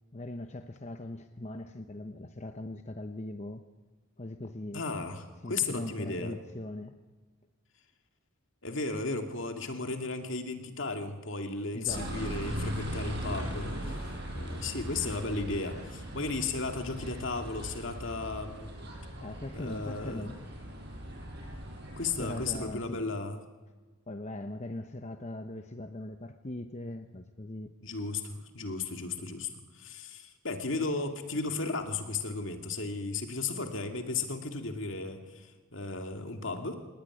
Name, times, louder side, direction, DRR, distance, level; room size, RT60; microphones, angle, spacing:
voice 1, 0.1-3.6 4.2-4.8 5.4-7.0 11.7-12.4 19.2-20.4 22.2-23.1 24.1-27.7, left 1 dB, 30° left, 7 dB, 0.9 m, -40 dB
voice 2, 4.7-6.3 8.6-18.7 19.5-20.3 22.0-23.4 27.8-36.8, left 3 dB, 60° left, 5 dB, 2.5 m, -35 dB
sound 1, 11.9-22.6, right 1 dB, 50° right, 6.1 m, -39 dB
26.0 x 19.0 x 9.8 m, 1.4 s
head